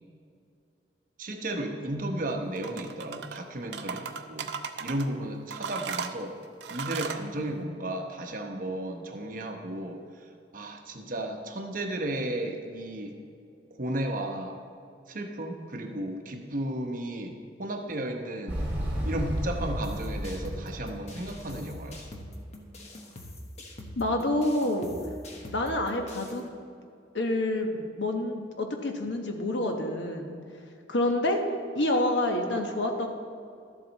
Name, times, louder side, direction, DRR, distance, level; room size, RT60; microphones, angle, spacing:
voice 1, 1.2-4.5 4.8-6.4 6.7-10.2 10.5-13.2 13.8-14.6 15.1-18.6 19.0-22.2, right 1 dB, 50° right, 3 dB, 1.0 m, -34 dB
sound 1, 2.6-3.4 3.7-5.1 5.5-7.2, right 6 dB, 70° right, 0.5 m, -36 dB
Motorcycle, 18.5-22.4, equal, 5° right, 2.7 m, -33 dB
sound 2, 19.8-26.4, left 1 dB, 40° left, 1.1 m, -44 dB
voice 2, 24.0-25.0 25.5-26.5 27.1-30.4 30.9-31.4 31.7-33.1, left 1 dB, 80° left, 4 dB, 1.1 m, -28 dB
12.5 x 7.5 x 4.0 m, 2.4 s
head